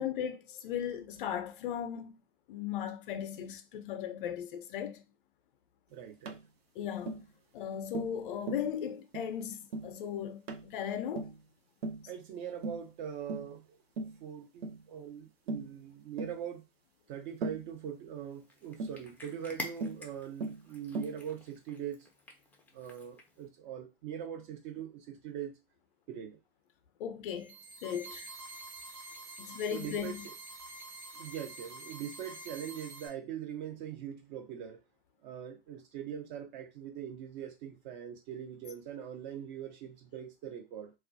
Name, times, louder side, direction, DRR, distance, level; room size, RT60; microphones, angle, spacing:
voice 1, 0.0-2.2 2.5-5.0 6.8-7.2 7.5-11.3 27.0-27.5 27.8-28.3 29.4-30.2, left 9 dB, 60° left, 0.5 m, -37 dB
voice 2, 5.9-6.4 12.1-13.6 14.0-16.6 17.1-22.1 22.7-25.6 26.1-26.4 29.7-30.2 31.1-34.8 35.2-40.9, right 9 dB, 50° right, 0.8 m, -42 dB
Tap, 6.3-6.4 7.1-7.3 7.9-8.2 8.5-8.7 9.1-9.3 9.7-9.9 10.5-10.7 11.2-11.4 11.8-12.1 12.6-12.9 13.3-13.5 14.0-14.2 14.6-14.8 15.5-15.7 16.2-16.4 17.4-17.7 18.8-19.0 19.8-20.0 20.4-20.6 21.0-21.2, right 3 dB, 85° right, 0.5 m, -38 dB
Cat, 18.3-23.5, left 2 dB, 5° left, 0.4 m, -48 dB
sound 1, 27.3-33.1, right 2 dB, 35° right, 1.1 m, -47 dB
2.3 x 2.1 x 2.5 m
hypercardioid pair, 95°, 30 cm